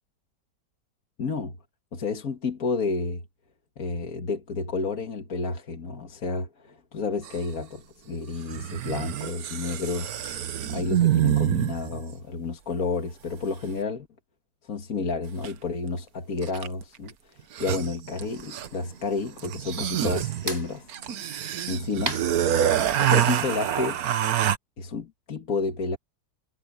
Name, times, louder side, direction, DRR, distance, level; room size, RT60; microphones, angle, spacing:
voice 1, 1.2-1.6 1.9-3.2 3.8-10.2 10.7-14.1 14.6-21.3 21.7-22.2 23.0-24.0 24.8-26.0, left 4 dB, 50° left, 2.1 m, -31 dB
sound 1, 7.2-7.4 8.5-12.0 15.4-15.5 16.4-16.8 17.1-17.2 17.4-18.9 19.4-24.6, right 11 dB, 60° right, 1.3 m, -26 dB
sound 2, 18.2-23.3, right 1 dB, 30° right, 7.2 m, -40 dB
omnidirectional pair, 2.0 m